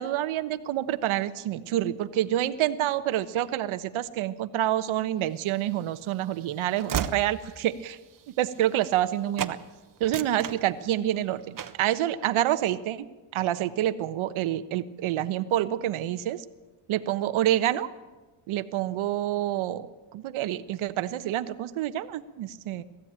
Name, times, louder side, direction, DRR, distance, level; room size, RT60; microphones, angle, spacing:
voice 1, 0.0-8.0 8.4-9.6 10.0-13.1 13.3-16.4 16.9-17.9 18.5-19.9 20.1-22.8, right 12 dB, 75° right, 11 dB, 1.2 m, -27 dB
Train / Slam, 5.5-9.1 9.4-9.6 10.0-11.2 11.6-11.9, right 8 dB, 40° right, 1.2 m, -35 dB
20.0 x 15.0 x 8.9 m, 1.2 s
cardioid pair, 100°, 49 cm